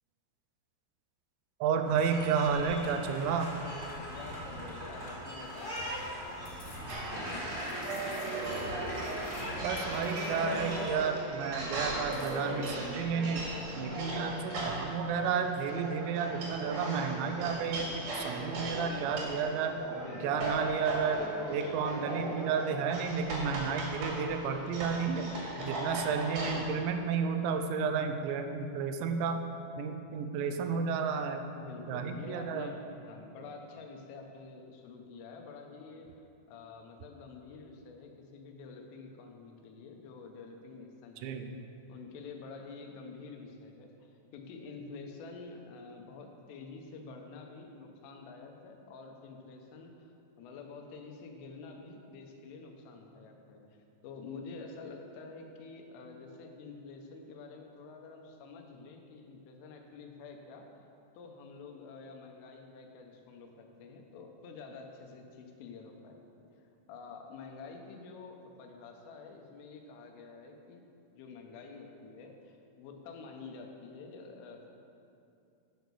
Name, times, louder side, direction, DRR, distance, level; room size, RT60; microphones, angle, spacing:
voice 1, 1.6-3.5 9.6-13.4 13.8-19.8 20.2-21.2 21.5-25.3 25.7-29.4 29.8-31.4 31.9-32.7 41.2-41.5, right 6 dB, 80° right, 6 dB, 2.7 m, -32 dB
sound 1, 1.8-10.9, equal, 15° right, 1.4 m, -40 dB
voice 2, 4.1-7.0 13.9-14.6 19.9-20.5 25.5-26.0 31.6-32.8 33.1-41.4 41.9-53.6 54.0-60.7 61.2-66.4 66.9-70.9 71.1-74.7, left 4 dB, 80° left, 3 dB, 3.6 m, -48 dB
sound 2, 5.3-7.0 7.4-10.7 12.1-12.7, left 3 dB, 60° left, 3.2 m, -56 dB
sound 3, 6.9-26.6, right 2 dB, 55° right, 3.4 m, -38 dB
11.0 x 6.2 x 6.9 m, 2.6 s
omnidirectional pair, 5.7 m